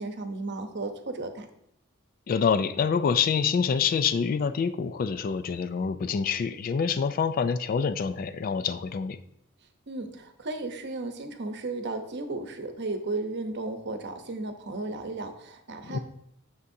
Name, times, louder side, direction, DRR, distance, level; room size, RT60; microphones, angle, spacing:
voice 1, 0.0-1.5 9.9-16.0, right 2 dB, 55° right, 7 dB, 0.8 m, -34 dB
voice 2, 2.3-9.2 15.9-16.0, left 6 dB, 40° left, 12 dB, 0.3 m, -26 dB
8.3 x 6.5 x 2.7 m, 0.74 s
head